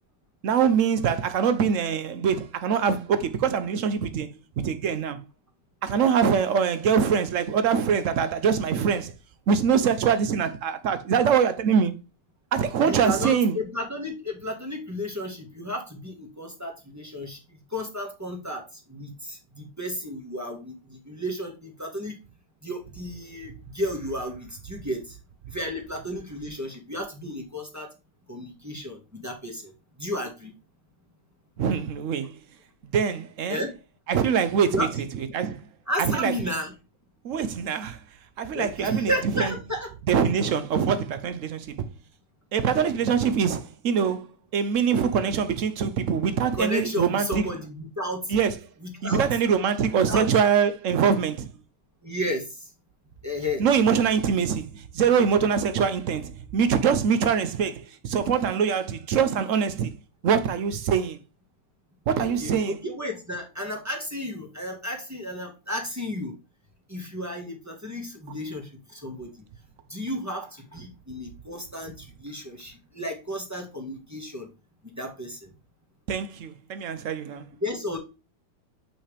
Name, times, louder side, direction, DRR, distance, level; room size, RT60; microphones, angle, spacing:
voice 1, 0.4-5.2 5.8-9.1 9.5-12.0 12.5-13.6 31.6-32.4 32.8-33.6 34.1-35.7 36.0-36.5 37.2-38.0 38.4-39.5 40.1-41.9 42.5-47.4 48.3-48.6 49.0-51.5 53.6-60.0 60.2-61.2 62.1-62.8 76.1-77.5, right 7 dB, 60° right, 0.8 m, -24 dB
voice 2, 12.8-17.4 17.7-18.6 18.9-22.1 22.6-25.2 25.5-27.9 28.3-29.7 30.0-30.5 33.5-33.7 34.7-34.9 35.9-36.7 38.5-39.9 46.5-48.3 48.8-49.2 50.0-50.3 52.0-52.5 53.2-53.7 62.2-66.3 66.9-69.3 69.9-74.5 74.8-75.5 77.6-78.0, equal, 10° right, 1.3 m, -33 dB
5.8 x 5.6 x 3.3 m
omnidirectional pair, 2.0 m